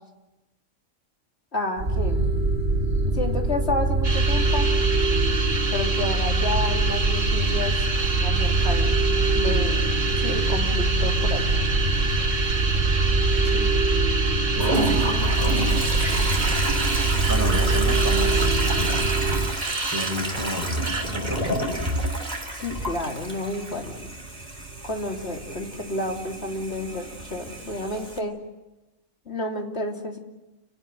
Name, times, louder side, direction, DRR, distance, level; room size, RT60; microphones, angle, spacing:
voice 1, 1.5-2.3 3.0-4.7 5.7-7.8 8.2-8.9 9.3-9.9 10.2-11.6 22.5-24.1 24.8-28.4 29.3-30.2, left 2 dB, 55° left, 2 dB, 3.4 m, -30 dB
sound 1, 1.8-19.5, right 2 dB, 60° right, 3.9 m, -23 dB
sound 2, 4.0-20.4 20.9-21.0, right 3 dB, 75° right, 2.3 m, -29 dB
voice 2, 13.1-13.7 14.5-16.0 17.3-19.0 19.9-20.8 21.1-21.8, equal, 10° right, 1 dB, 7.1 m, -31 dB
Toilet flush, 14.6-28.2, right 1 dB, 35° right, 3.3 m, -30 dB
29.5 x 19.0 x 9.4 m, 1.1 s
omnidirectional pair, 1.3 m